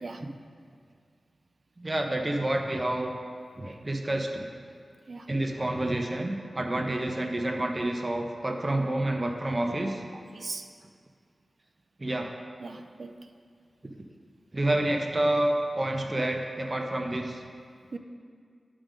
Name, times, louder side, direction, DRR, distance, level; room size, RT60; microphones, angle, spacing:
voice 1, 1.8-3.1 3.6-4.5 5.3-10.0 12.0-12.3 14.5-17.4, right 1 dB, 40° right, 3 dB, 0.9 m, -28 dB
voice 2, 10.3-10.7 12.6-13.2 17.9-18.0, right 3 dB, 65° right, 7 dB, 0.5 m, -39 dB
11.0 x 3.8 x 5.2 m, 2.1 s
cardioid pair, 45°, 0 cm